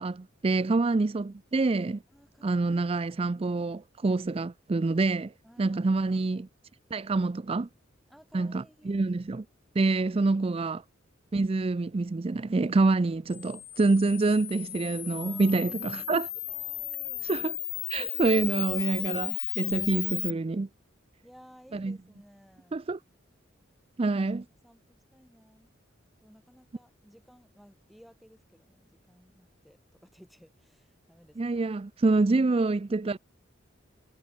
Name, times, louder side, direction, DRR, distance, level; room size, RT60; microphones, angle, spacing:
voice 1, 0.0-2.0 2.4-5.3 5.6-6.5 6.9-7.7 8.3-9.4 9.8-10.8 11.3-16.3 17.2-17.6 17.9-20.7 21.7-22.0 22.7-23.0 24.0-24.4 31.4-33.2, right 3 dB, 30° right, 0.4 m, -26 dB
voice 2, 2.1-2.8 5.4-6.5 8.1-9.1 15.1-16.2 16.5-17.3 18.0-18.2 21.2-22.8 24.3-25.7 26.2-31.6 32.2-32.6, equal, ahead, 5.1 m, -58 dB
Camera, 13.3-20.3, left 15 dB, 40° left, 2.1 m, -35 dB
head